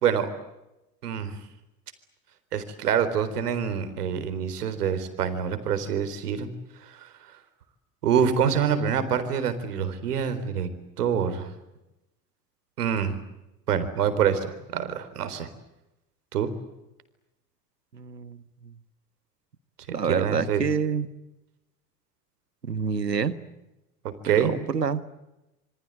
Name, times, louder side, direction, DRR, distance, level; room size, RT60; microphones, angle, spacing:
voice 1, 1.0-1.3 2.5-6.5 7.0-7.1 8.0-10.7 11.0-11.5 12.8-13.2 13.7-15.5 16.3-16.5 20.1-20.6 24.2-24.5, right 8 dB, 70° right, 11 dB, 4.1 m, -26 dB
voice 2, 17.9-18.4 19.9-21.1 22.7-23.3 24.3-25.0, right 6 dB, 85° right, 13 dB, 1.7 m, -27 dB
27.5 x 25.0 x 8.0 m, 0.95 s
figure-of-eight pair, 75°, 47 cm